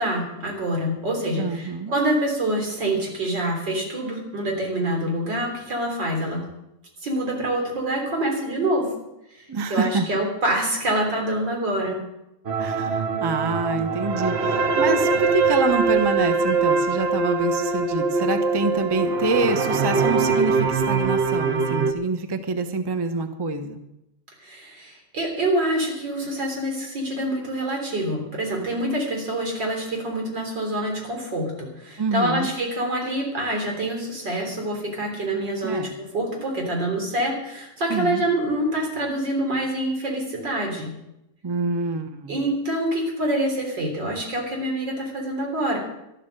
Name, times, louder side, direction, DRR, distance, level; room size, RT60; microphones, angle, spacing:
voice 1, 0.0-6.4 7.0-8.9 9.7-12.0 24.4-40.9 42.3-45.8, right 1 dB, 90° right, 1 dB, 4.3 m, -26 dB
voice 2, 1.4-1.9 9.5-10.1 12.6-23.8 32.0-32.5 35.6-35.9 37.9-38.2 41.4-42.3, right 3 dB, 20° right, 8 dB, 0.7 m, -26 dB
sound 1, 12.5-21.9, right 4 dB, 45° right, 1.0 m, -22 dB
12.5 x 12.0 x 6.5 m, 0.88 s
omnidirectional pair, 1.9 m